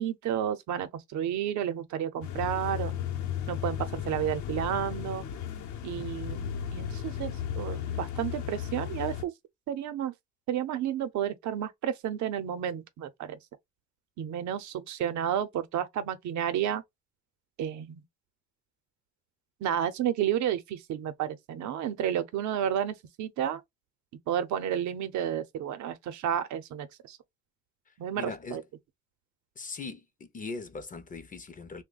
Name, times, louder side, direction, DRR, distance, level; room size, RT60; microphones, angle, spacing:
voice 1, 0.0-2.9 3.5-5.3 5.8-9.3 9.7-10.1 10.5-13.4 14.2-16.8 17.6-18.0 19.6-23.6 24.3-27.2 28.0-28.6, right 10 dB, 75° right, 0.7 m, -31 dB
sound 1, 2.2-9.2, left 9 dB, 75° left, 0.7 m, -35 dB
voice 2, 27.9-28.6 29.6-31.8, left 4 dB, 30° left, 0.5 m, -40 dB
2.9 x 2.2 x 3.8 m
cardioid pair, 120°, 29 cm